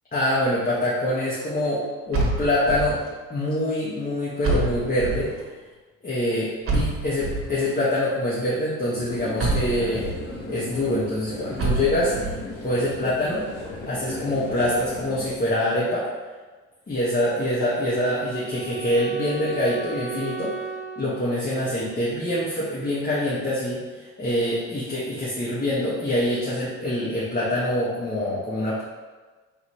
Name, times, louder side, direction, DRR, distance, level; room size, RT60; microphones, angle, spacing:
voice 1, 0.1-3.0 3.3-5.3 6.0-10.1 10.5-12.4 12.6-13.4 13.9-16.1 16.9-20.6 21.0-23.8 24.2-28.8, left 1 dB, 30° left, -9 dB, 1.3 m, -25 dB
sound 1, 2.1-3.1 4.4-5.4 6.7-7.6 9.4-10.3 11.6-12.4, right 3 dB, 45° right, 1.2 m, -26 dB
sound 2, 9.0-15.3, left 2 dB, 50° left, 1.1 m, -36 dB
Wind instrument woodwind instrument, 17.5-22.5, right 6 dB, 25° right, 0.5 m, -36 dB
4.0 x 3.9 x 3.1 m, 1.3 s
supercardioid pair, 65°, 30 cm